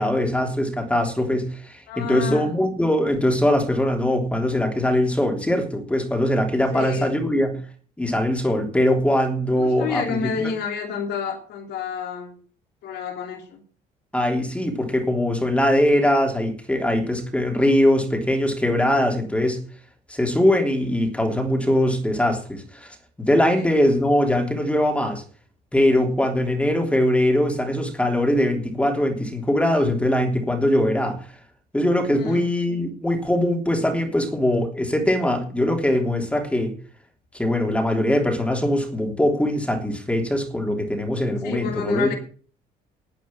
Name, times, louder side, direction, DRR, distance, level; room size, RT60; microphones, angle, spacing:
voice 1, 0.0-7.6 8.0-10.5 14.1-19.6 20.1-23.0 23.3-25.2 25.7-31.2 31.7-36.7 37.3-42.1, left 1 dB, 5° left, 4 dB, 3.2 m, -21 dB
voice 2, 1.9-2.5 6.7-7.2 9.6-12.4 12.8-13.6 23.5-23.7 32.2-32.5 41.4-42.2, left 6 dB, 75° left, 3 dB, 3.0 m, -29 dB
10.5 x 9.1 x 7.3 m, 0.42 s
cardioid pair, 110°, 17 cm